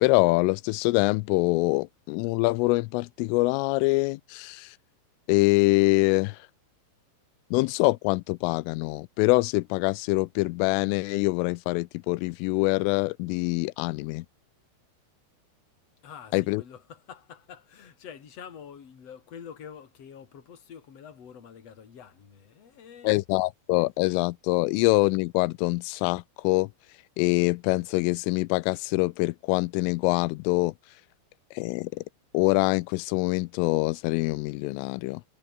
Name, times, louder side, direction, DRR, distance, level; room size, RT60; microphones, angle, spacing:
voice 1, 0.0-4.8 5.3-6.4 7.5-14.3 16.3-16.6 23.0-26.7 27.2-30.7 31.5-32.0 32.3-35.2, left 23 dB, 85° left, 3.1 m, -24 dB
voice 2, 16.0-23.2, left 8 dB, 35° left, 3.4 m, -46 dB
omnidirectional pair, 5.8 m